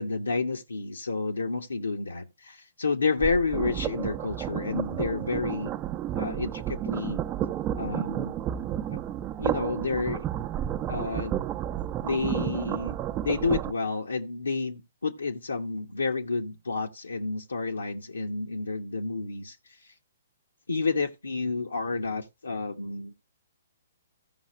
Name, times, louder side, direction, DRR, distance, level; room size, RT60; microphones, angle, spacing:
voice 1, 0.0-5.7 6.1-7.2 7.8-8.3 8.9-9.0 9.4-10.3 10.9-11.4 12.0-13.0 13.2-19.6 19.8-19.9 20.7-23.4, left 4 dB, 80° left, 1.1 m, -30 dB
sound 1, 3.2-13.7, right 11 dB, 25° right, 0.7 m, -31 dB
15.0 x 5.6 x 3.1 m
figure-of-eight pair, 125°, 0 cm